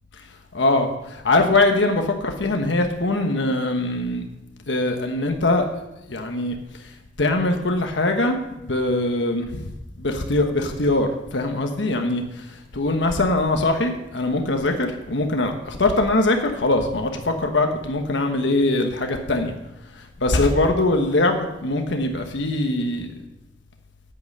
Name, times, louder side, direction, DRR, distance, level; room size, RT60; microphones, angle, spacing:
voice 1, 0.5-4.2 4.7-5.7 6.1-6.5 7.2-19.5 19.9-23.1, left 2 dB, 90° left, 4 dB, 1.2 m, -22 dB
9.2 x 8.8 x 6.5 m, 0.93 s
head